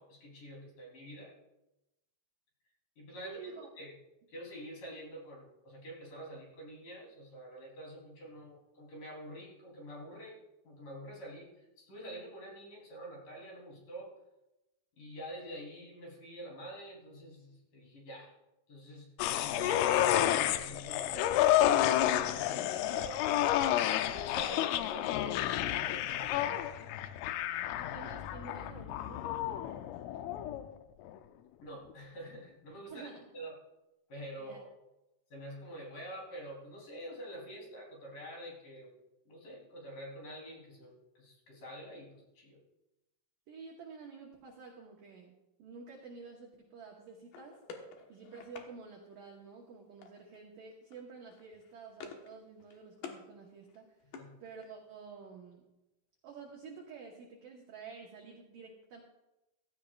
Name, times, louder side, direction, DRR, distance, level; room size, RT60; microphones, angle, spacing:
voice 1, 0.0-1.4 3.0-3.9 4.3-14.2 15.0-18.3 18.7-23.5 24.0-27.0 31.6-33.1 33.3-33.5 34.1-34.7 35.3-38.9 39.3-42.6 54.2-54.3, equal, 45° left, -2 dB, 4.6 m, -47 dB
voice 2, 3.2-3.7 27.8-29.6 32.9-33.2 34.4-34.6 43.5-47.6 48.1-55.6 56.2-59.0, right 5 dB, 75° right, -1 dB, 2.1 m, -50 dB
sound 1, 19.2-30.7 31.1-31.2, left 12 dB, 85° left, 3.2 m, -30 dB
sound 2, 47.3-48.7 50.0-50.4 50.7-51.0 51.3-52.3 52.6-53.2 53.6-54.9, left 5 dB, 65° left, 2.4 m, -50 dB
16.0 x 15.5 x 2.4 m, 0.96 s
omnidirectional pair, 5.7 m